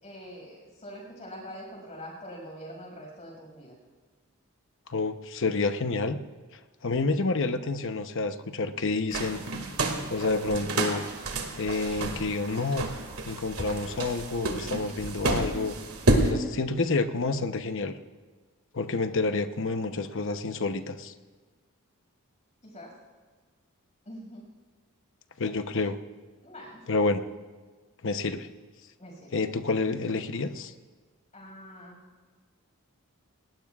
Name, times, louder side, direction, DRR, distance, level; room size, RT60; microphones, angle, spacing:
voice 1, 0.0-3.7 22.6-22.9 24.1-24.4 26.4-26.8 29.0-29.4 31.3-32.0, equal, 30° left, -1 dB, 6.2 m, -44 dB
voice 2, 4.9-6.2 6.8-9.4 10.1-11.0 11.6-12.9 13.3-15.7 16.2-17.9 18.7-21.1 25.4-26.0 26.9-27.2 28.0-28.5 29.3-30.7, left 3 dB, 60° left, 8 dB, 0.9 m, -28 dB
sound 1, 9.1-16.3, right 2 dB, 70° right, 2.3 m, -30 dB
28.5 x 19.5 x 2.4 m, 1.4 s
head